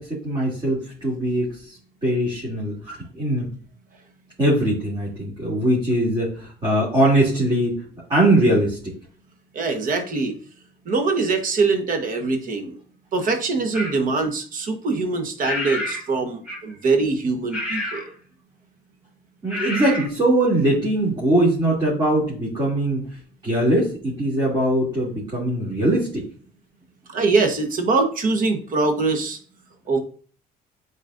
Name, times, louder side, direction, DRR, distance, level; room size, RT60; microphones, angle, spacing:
voice 1, 0.0-3.5 4.4-7.8 8.1-9.0 19.4-23.1 23.4-26.3, right 1 dB, 30° right, -7 dB, 2.7 m, -21 dB
voice 2, 9.5-10.3 10.9-12.8 13.1-18.1 27.1-29.4 29.9-30.0, right 3 dB, 55° right, 5 dB, 1.3 m, -23 dB
sound 1, 13.7-14.0 15.4-16.1 16.4-16.8 17.5-18.1 19.5-20.1, left 1 dB, 5° right, 2.6 m, -28 dB
8.7 x 4.2 x 2.6 m, 0.43 s
cardioid pair, 110°, 17 cm